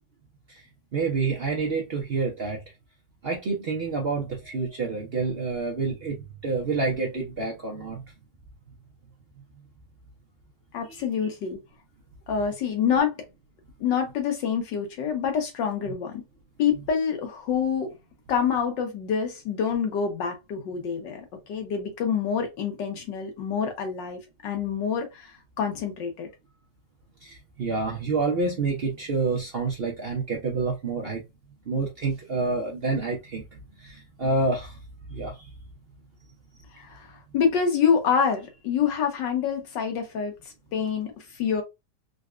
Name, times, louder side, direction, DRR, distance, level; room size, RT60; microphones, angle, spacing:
voice 1, 0.9-2.6 3.2-8.0 27.2-31.2 31.7-33.4 33.8-34.8 35.1-35.5, right 3 dB, 55° right, 0.6 m, -28 dB
voice 2, 10.7-11.6 12.3-13.2 13.8-16.2 16.6-17.9 18.3-26.3 36.7-40.3 40.7-41.6, left 7 dB, 90° left, 1.7 m, -27 dB
3.9 x 2.3 x 2.4 m
omnidirectional pair, 1.9 m